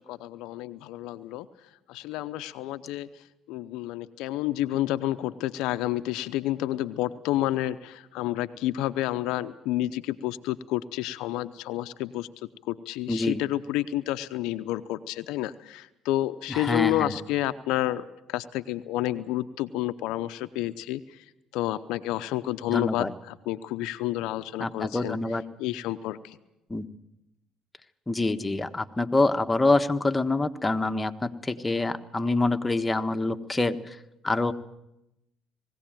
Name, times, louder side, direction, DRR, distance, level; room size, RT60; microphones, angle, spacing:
voice 1, 0.0-1.5 1.9-12.3 12.7-21.3 21.5-25.2 25.6-26.4, left 14 dB, 75° left, 11 dB, 0.7 m, -30 dB
voice 2, 13.1-13.4 16.5-17.1 22.7-23.1 24.6-25.4 26.7-26.9 28.1-34.0 34.2-34.5, left 2 dB, 15° left, 6 dB, 1.4 m, -26 dB
21.0 x 16.5 x 9.1 m, 0.89 s
supercardioid pair, 70°, 0 cm